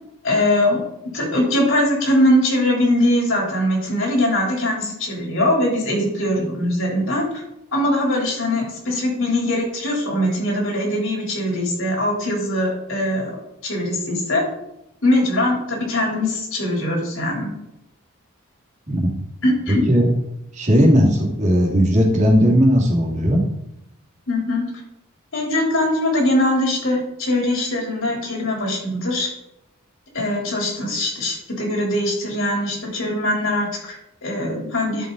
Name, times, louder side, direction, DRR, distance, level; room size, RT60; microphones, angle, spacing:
voice 1, 0.2-0.8 1.1-7.4 7.7-13.4 13.6-14.4 15.0-17.5 19.4-19.8 24.3-24.6 25.3-29.3 30.1-35.1, left 1 dB, 75° left, -2 dB, 3.8 m, -21 dB
voice 2, 19.7-20.1 20.5-23.4, equal, 35° right, -2 dB, 2.5 m, -16 dB
11.5 x 7.4 x 4.1 m, 0.84 s
head